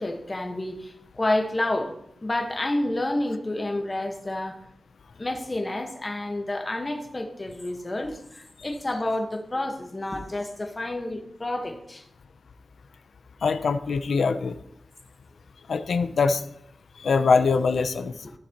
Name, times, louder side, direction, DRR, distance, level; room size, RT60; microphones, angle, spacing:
voice 1, 0.0-1.9 2.2-4.6 5.2-12.0 18.2-18.3, left 1 dB, 25° left, 3 dB, 1.3 m, -29 dB
voice 2, 13.4-14.6 15.7-16.4 17.0-18.1, left 4 dB, 85° left, 10 dB, 0.6 m, -23 dB
14.0 x 7.1 x 3.0 m, 0.74 s
wide cardioid pair, 130°, 0 cm